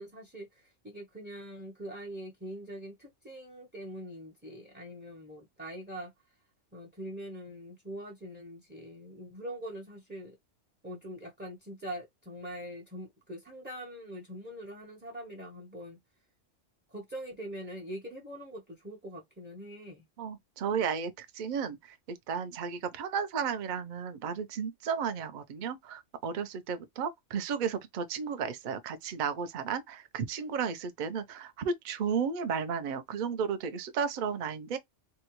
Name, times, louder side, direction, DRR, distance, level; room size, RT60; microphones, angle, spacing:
voice 1, 0.0-6.1 6.7-10.4 10.8-16.0 16.9-20.0, equal, 10° right, 0.6 m, -43 dB
voice 2, 20.2-34.8, right 6 dB, 50° right, 0.6 m, -33 dB
3.6 x 2.2 x 2.9 m
omnidirectional pair, 1.2 m